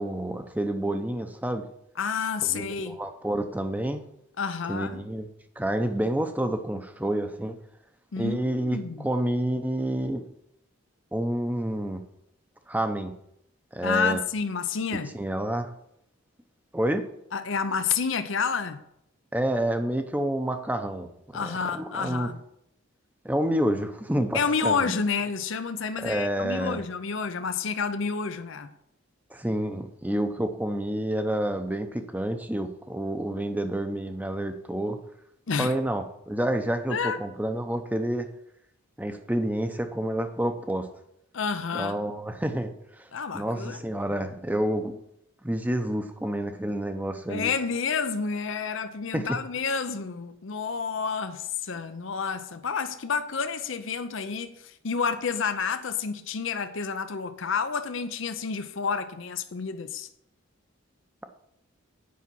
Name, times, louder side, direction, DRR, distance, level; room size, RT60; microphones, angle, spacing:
voice 1, 0.0-1.6 2.4-4.0 4.7-5.3 5.6-7.5 8.2-10.2 11.1-12.0 12.7-13.1 13.7-14.2 14.9-15.7 16.7-17.1 19.3-21.1 21.3-22.3 23.2-25.0 26.0-26.8 29.3-35.0 35.6-38.3 39.0-40.9 41.7-43.1 43.3-45.0 45.4-47.5 49.1-49.3, right 1 dB, 10° right, 0.7 m, -29 dB
voice 2, 2.0-3.0 4.4-5.0 8.1-9.1 13.8-15.1 17.3-18.8 21.3-22.4 24.3-28.7 35.5-35.7 36.9-37.2 41.3-42.0 43.1-43.8 44.1-44.2 47.3-60.1, left 5 dB, 65° left, 0.6 m, -29 dB
8.4 x 5.7 x 7.5 m
head